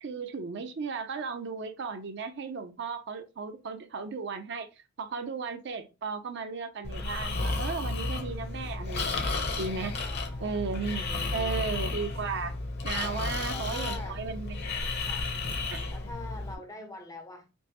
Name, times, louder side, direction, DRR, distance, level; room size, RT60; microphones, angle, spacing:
voice 1, 0.0-4.7 5.0-9.9 10.4-12.5 12.8-14.6 15.7-15.9, right 5 dB, 50° right, 0.5 m, -35 dB
Breathing, 6.8-16.5, left 3 dB, 50° left, 0.8 m, -33 dB
voice 2, 10.0-11.7 12.9-13.2 13.5-14.2 15.1-15.3 15.9-17.5, left 2 dB, 15° left, 0.5 m, -44 dB
5.2 x 2.0 x 2.9 m
head